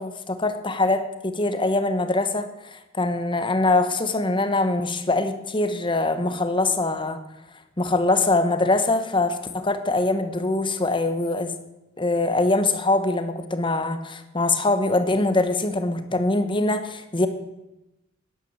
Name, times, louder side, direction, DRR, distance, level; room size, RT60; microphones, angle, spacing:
voice 1, 0.0-7.2 7.8-11.6 12.0-17.3, left 2 dB, 25° left, 9 dB, 1.2 m, -23 dB
12.0 x 10.0 x 7.3 m, 0.95 s
head